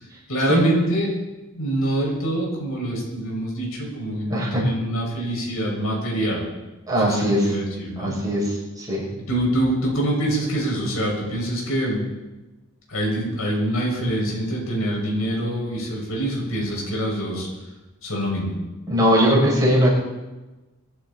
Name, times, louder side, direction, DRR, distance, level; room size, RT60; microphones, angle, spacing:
voice 1, 0.3-1.1 1.5-6.4 7.0-8.2 9.3-12.0 12.9-17.5 18.0-18.5, right 1 dB, 85° left, -2 dB, 6.4 m, -25 dB
voice 2, 4.3-4.6 6.9-7.4 8.0-8.4 8.8-9.1 18.9-19.9, equal, 20° right, -6 dB, 7.0 m, -19 dB
24.0 x 12.0 x 4.3 m, 1.1 s
head